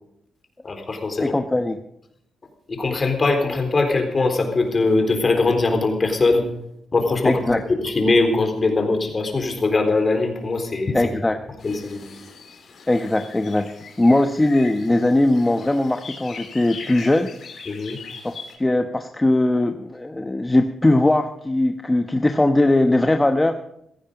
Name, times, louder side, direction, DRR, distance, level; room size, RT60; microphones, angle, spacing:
voice 1, 0.6-1.4 2.7-6.4 6.9-7.4 7.7-11.0 11.6-12.1 17.7-18.0, left 3 dB, 40° left, 5 dB, 3.8 m, -21 dB
voice 2, 1.2-1.8 7.2-7.6 10.9-11.4 12.9-13.7 14.0-17.3 18.2-23.5, left 1 dB, 15° left, 6 dB, 1.0 m, -20 dB
sound 1, 11.6-18.6, left 5 dB, 65° left, 3.4 m, -41 dB
16.5 x 15.0 x 5.1 m, 0.77 s
cardioid pair, 75°, 0 cm